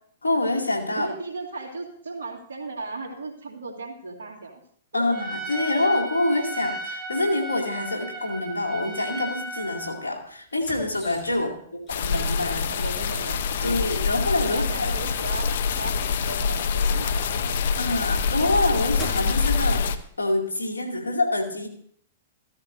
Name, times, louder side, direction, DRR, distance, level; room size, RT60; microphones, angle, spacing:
voice 1, 0.2-1.1 4.9-11.5 11.9-12.7 13.6-14.9 17.8-21.7, left 2 dB, 90° left, 0 dB, 2.4 m, -26 dB
voice 2, 0.9-4.6 4.9-5.2 11.3-11.6 12.7-13.8 14.4-17.6, right 3 dB, 80° right, 1 dB, 2.4 m, -36 dB
Trumpet, 5.1-10.0, right 2 dB, 5° right, 3.3 m, -35 dB
Turning door handle, 10.5-11.6 11.9-13.2 14.0-14.1 14.3-14.4 14.9-17.0 17.4-19.6 20.5-20.6, left 1 dB, 25° left, 4.6 m, -43 dB
sound 1, 11.9-20.0, left 5 dB, 65° left, 0.7 m, -25 dB
15.0 x 13.5 x 2.6 m, 0.63 s
hypercardioid pair, 115°, 0 cm